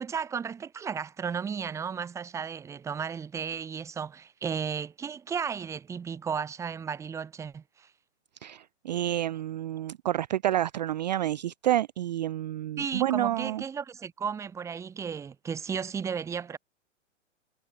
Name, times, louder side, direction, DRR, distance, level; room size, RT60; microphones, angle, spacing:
voice 1, 0.0-7.9 12.8-16.6, right 6 dB, 10° right, 0.9 m, -34 dB
voice 2, 8.4-13.6, right 12 dB, 35° right, 0.5 m, -29 dB
figure-of-eight pair, 115°, 38 cm